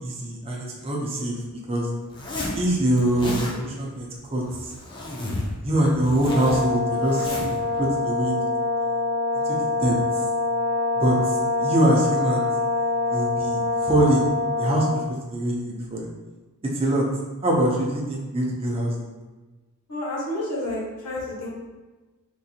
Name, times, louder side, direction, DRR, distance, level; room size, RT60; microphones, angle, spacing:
voice 1, 0.0-1.3 1.7-1.9 2.5-4.7 5.6-8.4 9.5-10.0 11.0-11.2 11.6-12.5 13.1-14.3 14.6-15.0 15.3-16.1 16.8-17.0 17.4-19.0, right 1 dB, 25° right, -2 dB, 0.6 m, -24 dB
Zipper (clothing), 2.1-2.6 3.0-3.5 4.4-5.5 5.8-7.6, left 1 dB, 20° left, 0.5 m, -32 dB
Brass instrument, 6.2-15.1, left 3 dB, 75° right, 0.5 m, -25 dB
voice 2, 19.9-21.5, left 1 dB, 80° left, -6 dB, 1.3 m, -30 dB
3.7 x 2.5 x 2.7 m, 1.2 s
head